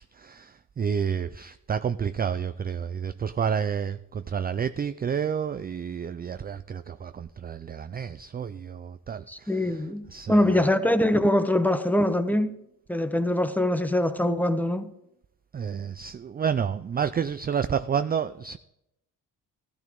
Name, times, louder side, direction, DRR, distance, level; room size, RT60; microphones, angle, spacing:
voice 1, 0.0-9.8 10.1-10.7 15.5-18.6, right 7 dB, 25° right, 0.3 m, -30 dB
voice 2, 9.3-12.5 12.9-14.9, left 1 dB, 5° left, 0.8 m, -23 dB
15.5 x 12.5 x 3.6 m
cardioid pair, 90°, 39 cm